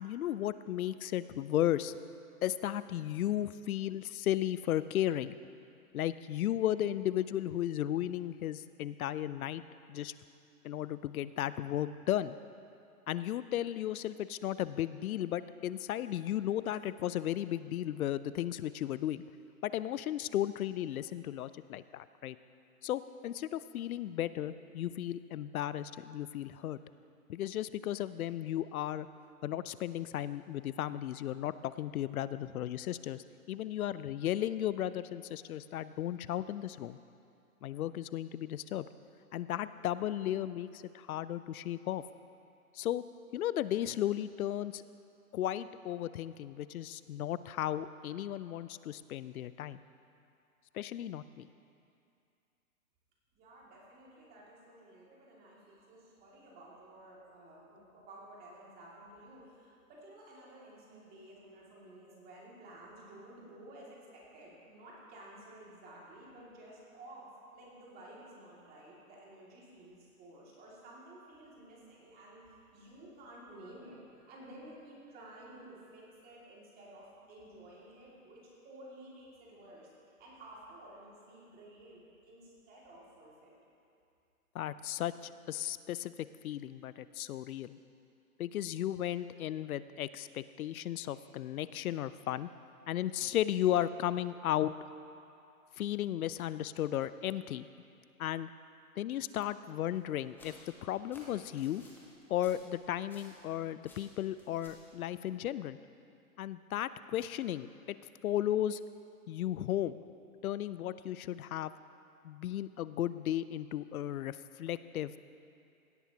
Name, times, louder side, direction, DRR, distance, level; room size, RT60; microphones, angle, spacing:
voice 1, 0.0-2.0 2.4-5.4 5.9-9.6 9.9-10.1 10.6-12.4 13.1-19.2 19.6-22.4 22.8-26.8 27.3-29.1 29.4-37.0 37.6-38.9 39.3-42.0 42.7-43.0 43.3-44.8 45.3-49.8 50.7-51.5 84.5-87.8 88.4-92.5 92.9-94.7 95.8-97.7 98.2-98.5 99.0-101.8 102.3-105.8 106.4-108.0 108.2-108.8 109.3-110.0 110.4-111.7 112.2-115.2, left 12 dB, 75° left, 15 dB, 0.5 m, -35 dB
voice 2, 53.3-83.6, right 1 dB, 20° right, -5 dB, 2.3 m, -53 dB
sound 1, 99.9-103.5 103.8-104.9, left 1 dB, 5° left, 0.9 m, -57 dB
16.5 x 9.1 x 2.8 m, 2.5 s
hypercardioid pair, 140°, 44 cm